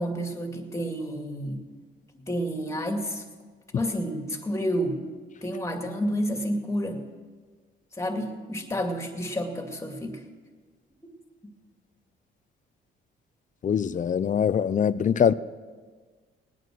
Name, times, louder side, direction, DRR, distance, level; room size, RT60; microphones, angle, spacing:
voice 1, 0.0-1.6 2.3-3.2 3.7-5.0 5.4-7.0 8.0-10.2, equal, 15° left, 2.3 m, -30 dB
voice 2, 13.6-15.3, left 8 dB, 40° left, 0.5 m, -23 dB
19.5 x 9.3 x 6.3 m
cardioid pair, 90°, 20 cm